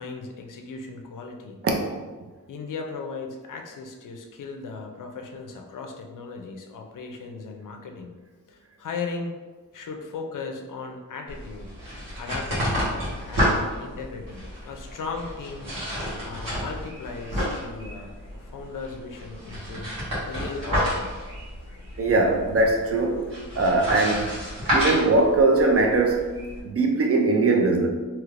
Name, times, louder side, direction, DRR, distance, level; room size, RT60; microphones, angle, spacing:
voice 1, 0.0-1.6 2.5-8.2 8.5-9.4 9.7-11.7 12.2-15.7 16.2-19.9 20.3-21.1, left 4 dB, 70° left, 3 dB, 0.5 m, -37 dB
sound 1, 11.3-26.6, equal, 80° right, 1.4 m, -30 dB
voice 2, 22.0-23.3 23.6-24.3 24.7-26.3 26.6-27.9, right 3 dB, 45° right, 2 dB, 0.4 m, -21 dB
3.2 x 3.0 x 2.4 m, 1.3 s
wide cardioid pair, 155°, 33 cm